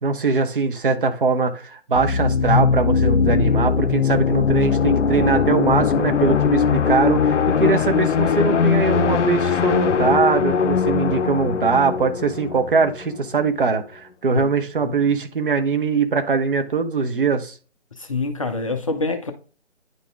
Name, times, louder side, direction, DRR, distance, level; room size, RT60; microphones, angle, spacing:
voice 1, 0.0-17.5, right 4 dB, 45° right, 1.0 m, -21 dB
sound 1, 1.9-13.5, left 6 dB, 80° left, 0.6 m, -20 dB
voice 2, 18.0-19.3, left 3 dB, 30° left, 0.6 m, -26 dB
9.8 x 4.0 x 3.5 m
figure-of-eight pair, 145°, 35 cm